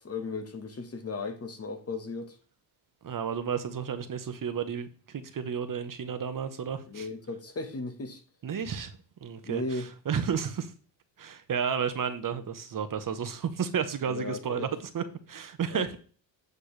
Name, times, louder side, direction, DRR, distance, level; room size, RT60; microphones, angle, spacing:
voice 1, 0.0-2.3 6.9-8.2 9.5-9.9 14.1-14.7 15.7-16.0, left 3 dB, 30° left, 1.4 m, -36 dB
voice 2, 3.0-7.1 8.4-8.9 9.2-10.7 11.2-16.0, right 7 dB, 45° right, 1.1 m, -32 dB
8.9 x 6.7 x 3.3 m
cardioid pair, 105°, 47 cm